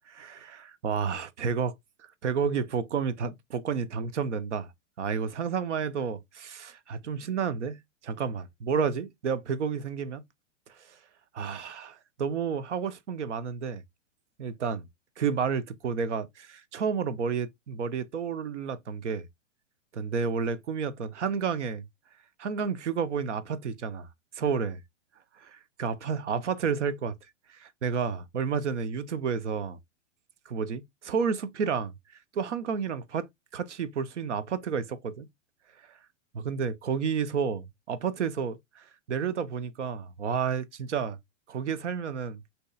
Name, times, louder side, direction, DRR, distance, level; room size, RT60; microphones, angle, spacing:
voice 1, 0.1-1.7 2.2-4.7 5.0-10.2 11.3-13.8 14.4-14.9 15.2-19.3 19.9-21.8 22.4-24.1 24.3-24.8 25.4-27.1 27.5-29.8 30.5-31.9 32.3-33.3 33.5-35.3 36.3-41.2 41.5-42.4, right 6 dB, 65° right, 0.8 m, -31 dB
6.2 x 3.0 x 2.3 m
figure-of-eight pair, 110°, 37 cm